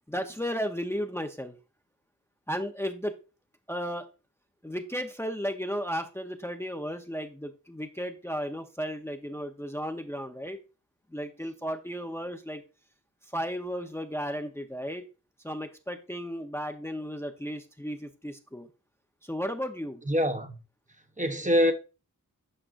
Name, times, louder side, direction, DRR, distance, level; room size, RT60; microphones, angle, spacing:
voice 1, 0.1-1.5 2.5-3.1 3.7-4.1 4.6-10.6 11.1-12.6 13.3-15.1 15.4-18.7 19.2-20.0, equal, 5° left, 0.8 m, -34 dB
voice 2, 20.1-20.6 21.2-21.7, equal, 20° right, 1.0 m, -24 dB
8.8 x 5.2 x 2.6 m
cardioid pair, 50°, 35 cm